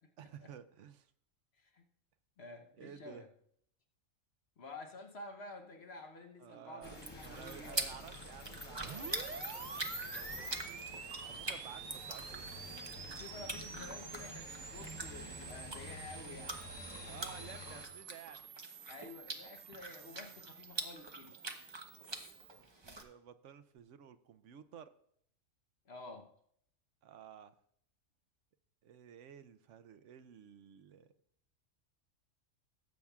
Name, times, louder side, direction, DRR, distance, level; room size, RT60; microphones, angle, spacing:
voice 1, 0.2-1.1 2.8-3.3 6.4-12.5 17.0-18.5 19.7-20.3 22.5-24.9 27.0-27.6 28.8-31.1, right 9 dB, 70° right, 11 dB, 1.0 m, -54 dB
voice 2, 1.6-1.9 2.4-3.3 4.6-7.9 13.1-16.6 18.9-21.4 25.8-26.3, left 2 dB, 55° left, 3 dB, 1.2 m, -50 dB
sound 1, 6.8-17.9, left 1 dB, 20° left, 0.9 m, -48 dB
sound 2, 6.9-23.0, right 2 dB, 25° right, 0.8 m, -45 dB
sound 3, 8.8-22.7, right 7 dB, 90° right, 0.4 m, -49 dB
18.0 x 8.5 x 2.4 m, 0.69 s
omnidirectional pair, 1.4 m